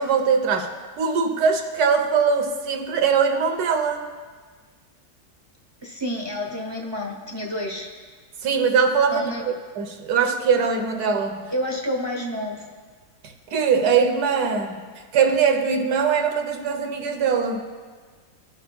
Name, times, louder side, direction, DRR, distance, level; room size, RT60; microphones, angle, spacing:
voice 1, 0.0-4.1 8.4-11.5 13.2-14.9 15.1-17.6, right 6 dB, 75° right, 5 dB, 1.3 m, -22 dB
voice 2, 5.8-7.9 9.1-9.4 11.5-12.7, left 1 dB, 30° right, -1 dB, 0.4 m, -29 dB
17.0 x 5.7 x 2.2 m, 1.5 s
omnidirectional pair, 1.7 m